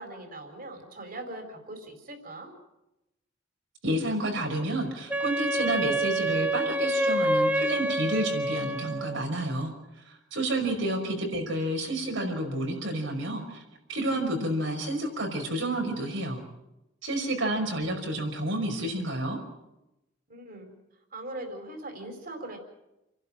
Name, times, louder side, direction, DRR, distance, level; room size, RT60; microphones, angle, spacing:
voice 1, 0.0-2.5 10.8-11.0 20.3-20.7 21.1-22.6, right 1 dB, 45° right, 5 dB, 4.3 m, -41 dB
voice 2, 3.8-9.7 10.1-13.6 13.9-16.4 17.0-19.4, right 1 dB, 75° right, 2 dB, 5.5 m, -30 dB
Wind instrument woodwind instrument, 5.1-9.2, right 1 dB, 10° right, 0.8 m, -27 dB
29.0 x 12.0 x 8.8 m, 0.94 s
head